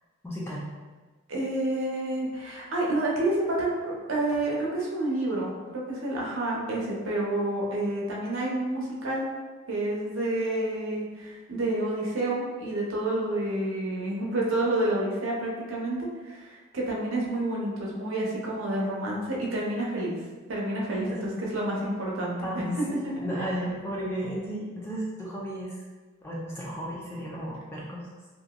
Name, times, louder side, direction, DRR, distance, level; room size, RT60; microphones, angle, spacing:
voice 1, 0.2-0.7 20.9-21.3 22.4-25.8 26.2-28.1, equal, 10° left, -4 dB, 0.3 m, -34 dB
voice 2, 1.3-9.3 9.7-20.1 20.5-22.4 22.8-23.1, right 1 dB, 65° right, -3 dB, 0.6 m, -29 dB
2.8 x 2.5 x 2.2 m, 1.3 s
head